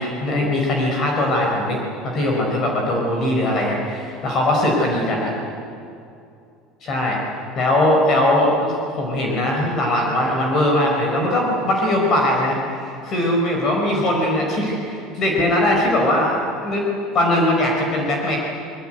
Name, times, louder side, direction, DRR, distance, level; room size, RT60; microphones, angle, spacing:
voice 1, 0.0-1.8 2.0-5.3 6.8-7.2 7.5-16.3 16.6-16.8 17.1-18.4, left 1 dB, 30° left, 0 dB, 4.9 m, -20 dB
26.5 x 22.0 x 9.1 m, 2.5 s
cardioid pair, 175°, 0 cm